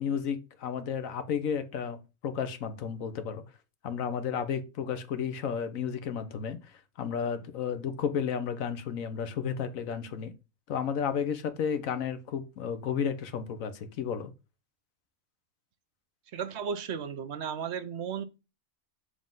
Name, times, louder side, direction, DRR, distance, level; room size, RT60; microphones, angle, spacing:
voice 1, 0.0-2.0 2.2-3.4 3.8-10.3 10.7-14.3, left 7 dB, 90° left, 1.3 m, -32 dB
voice 2, 16.3-18.2, right 7 dB, 65° right, 0.8 m, -34 dB
7.3 x 3.6 x 3.8 m
omnidirectional pair, 1.4 m